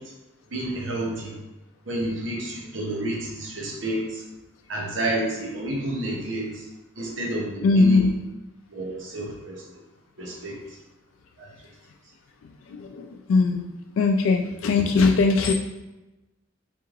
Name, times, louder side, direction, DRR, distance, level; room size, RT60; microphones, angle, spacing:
voice 1, 0.5-1.3 1.9-4.2 4.7-6.6 7.0-8.0 8.7-9.6 10.2-10.5 11.4-11.5, right 1 dB, 70° right, -2 dB, 0.9 m, -30 dB
voice 2, 7.6-8.2 12.7-13.6 14.0-15.5, left 3 dB, 85° left, 4 dB, 0.3 m, -20 dB
3.6 x 3.4 x 3.1 m, 1.0 s
head